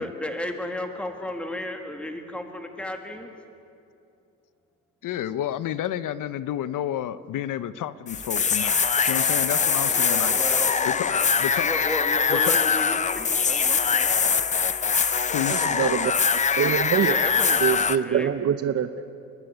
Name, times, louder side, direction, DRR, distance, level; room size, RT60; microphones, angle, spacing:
voice 1, 0.0-3.3 9.8-14.1 17.0-18.3, left 1 dB, 5° left, 4 dB, 1.7 m, -34 dB
voice 2, 5.0-10.4 10.9-11.9 12.3-12.7 15.3-16.0, left 11 dB, 65° left, 15 dB, 0.7 m, -31 dB
sound 1, 8.1-18.0, left 6 dB, 20° left, 0.5 m, -23 dB
voice 3, 15.5-16.1 16.6-17.2 17.6-18.9, right 9 dB, 45° right, 10 dB, 0.8 m, -24 dB
29.5 x 11.5 x 9.8 m, 2.6 s
cardioid pair, 135°, 34 cm